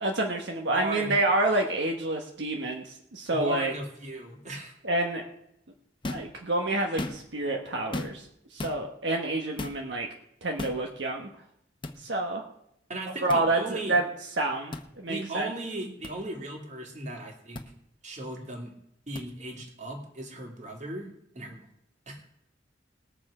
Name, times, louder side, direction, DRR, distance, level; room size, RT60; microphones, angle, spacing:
voice 1, 0.0-3.7 4.8-5.2 6.1-8.3 8.5-10.1 10.4-11.3 12.0-12.4 13.2-14.0 14.4-15.5, right 2 dB, 75° right, 2 dB, 1.3 m, -28 dB
voice 2, 0.7-1.1 3.3-4.8 12.9-14.0 15.1-17.6 18.0-18.7 19.1-21.1 21.4-21.7 22.1-22.2, right 2 dB, 45° right, 2 dB, 2.4 m, -37 dB
sound 1, 6.0-6.3 6.8-7.4 7.9-8.3 8.6-8.8 9.6-9.8 10.6-10.8 11.8-12.0 13.3-13.4 14.7-14.9 16.0-16.1 17.5-17.7 19.2-19.3, left 2 dB, 30° left, 0.9 m, -35 dB
20.0 x 7.0 x 4.9 m, 0.76 s
head